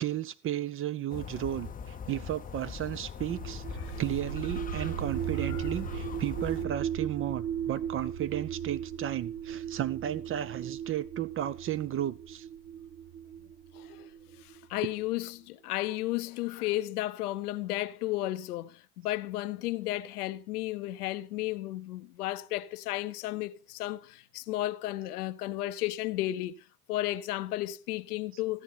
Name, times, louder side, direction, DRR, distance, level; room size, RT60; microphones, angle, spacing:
voice 1, 0.0-12.5, right 12 dB, 30° right, 0.6 m, -34 dB
sound 1, 1.1-6.7, left 6 dB, 20° left, 0.7 m, -41 dB
sound 2, 3.2-15.0, right 9 dB, 75° right, 1.4 m, -37 dB
voice 2, 13.7-14.1 14.4-28.6, left 16 dB, 75° left, 0.8 m, -33 dB
13.5 x 9.1 x 4.0 m
hypercardioid pair, 85°, 46 cm